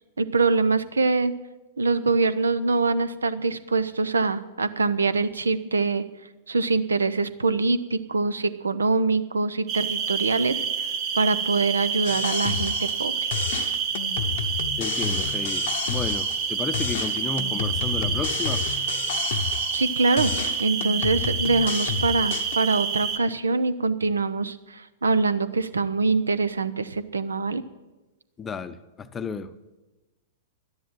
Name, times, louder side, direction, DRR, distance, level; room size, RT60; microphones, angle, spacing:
voice 1, 0.2-1.3 1.8-6.0 6.5-13.3 19.7-20.3 20.6-27.6, right 3 dB, 75° right, 15 dB, 0.7 m, -24 dB
sound 1, 9.7-23.2, right 6 dB, 40° right, 1.3 m, -28 dB
sound 2, 12.0-13.1 13.3-16.5 16.7-19.9 20.2-22.6, left 7 dB, 55° left, 0.8 m, -31 dB
voice 2, 14.8-18.6 28.4-29.5, left 5 dB, 20° left, 13 dB, 0.7 m, -33 dB
12.0 x 10.5 x 7.5 m, 1.1 s
figure-of-eight pair, 100°, 0 cm